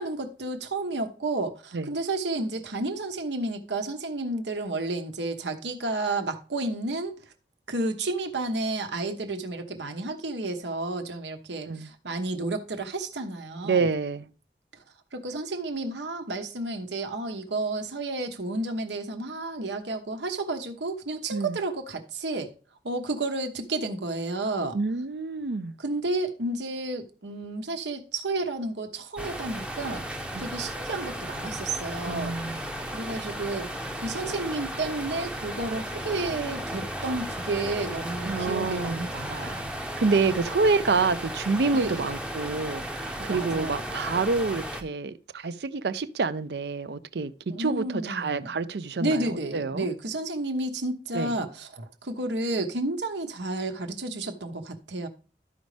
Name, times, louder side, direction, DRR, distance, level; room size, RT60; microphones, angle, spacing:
voice 1, 0.0-7.2 7.7-13.9 15.1-22.5 22.8-24.8 25.8-30.0 30.4-32.4 32.9-33.7 34.0-39.7 41.7-42.0 43.2-43.8 47.5-48.5 49.0-55.1, right 2 dB, 90° right, 1.2 m, -31 dB
voice 2, 13.6-14.3 21.3-21.6 24.7-25.7 30.3-30.5 32.1-32.6 33.1-33.2 38.3-39.6 40.0-47.3 47.6-49.9 51.1-51.3, right 4 dB, 75° right, 0.5 m, -28 dB
sound 1, 29.2-44.8, equal, 5° right, 0.6 m, -35 dB
13.0 x 5.2 x 3.3 m
head